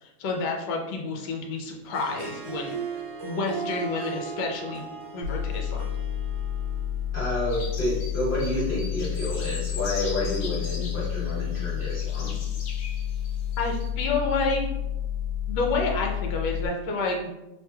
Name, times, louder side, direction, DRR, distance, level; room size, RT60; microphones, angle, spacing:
voice 1, 0.0-2.7 3.2-4.9 5.1-5.8 13.6-14.6 15.5-17.3, left 3 dB, 70° left, 1 dB, 1.1 m, -29 dB
Harp, 1.8-7.2, right 5 dB, 75° right, 1.0 m, -37 dB
sound 1, 5.2-16.7, left 9 dB, 90° right, 1.4 m, -30 dB
voice 2, 7.1-12.3, left 1 dB, 35° left, -10 dB, 1.0 m, -29 dB
sound 2, 7.5-13.9, left 4 dB, 85° left, 0.7 m, -41 dB
3.2 x 3.0 x 2.2 m, 0.93 s
omnidirectional pair, 2.2 m